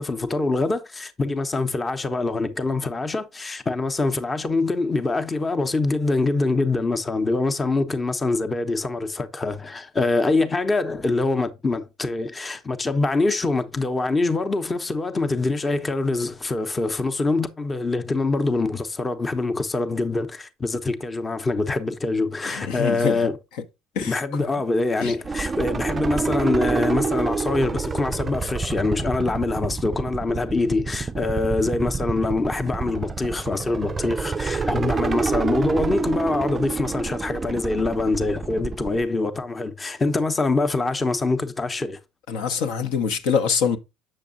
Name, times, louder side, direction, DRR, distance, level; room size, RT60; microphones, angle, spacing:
voice 1, 0.0-23.4 24.1-42.0, left 3 dB, 20° left, 0.8 m, -24 dB
voice 2, 22.4-23.3 24.0-24.2 25.0-25.1 42.3-43.8, left 6 dB, 60° left, 0.8 m, -24 dB
sound 1, 25.2-39.0, right 4 dB, 25° right, 0.4 m, -27 dB
7.6 x 6.8 x 2.5 m
figure-of-eight pair, 60°, 0 cm